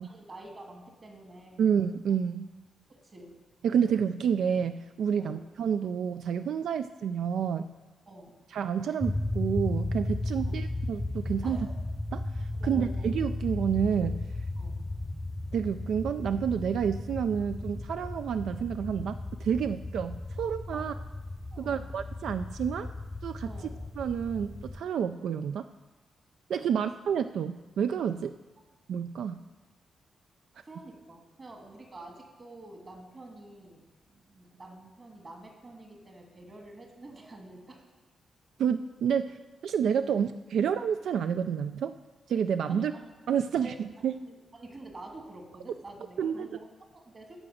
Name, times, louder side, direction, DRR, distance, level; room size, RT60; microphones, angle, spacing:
voice 1, 0.0-1.7 2.9-3.4 5.2-5.4 8.1-8.4 10.4-10.6 11.4-11.7 12.6-13.1 14.6-14.9 20.7-20.9 21.5-22.0 23.5-23.7 26.7-26.9 30.6-37.9 40.1-40.2 42.7-43.1 43.5-43.8 44.2-47.4, right 2 dB, 30° right, 1 dB, 2.0 m, -48 dB
voice 2, 1.6-2.5 3.6-7.7 8.5-11.6 12.1-14.2 15.5-20.9 21.6-22.9 23.2-23.5 24.0-25.7 26.5-28.3 28.9-29.4 38.6-39.4 39.6-41.9 42.3-42.9 43.3-44.1 46.2-46.5, right 7 dB, 80° right, 10 dB, 0.3 m, -29 dB
sound 1, 9.0-24.8, left 2 dB, 15° left, 0.4 m, -35 dB
14.0 x 5.0 x 6.3 m, 1.2 s
wide cardioid pair, 130°, 0 cm